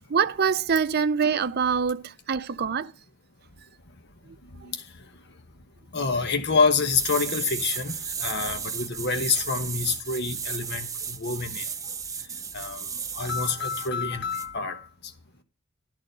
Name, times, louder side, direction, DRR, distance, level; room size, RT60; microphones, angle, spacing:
voice 1, 0.1-2.9, right 6 dB, 50° right, 0.6 m, -24 dB
voice 2, 5.9-11.6 12.5-12.9 13.1-14.8, left 4 dB, 55° left, 1.1 m, -27 dB
sound 1, 6.8-13.9 14.3-14.5, right 6 dB, 15° right, 0.7 m, -34 dB
12.5 x 4.2 x 8.0 m
head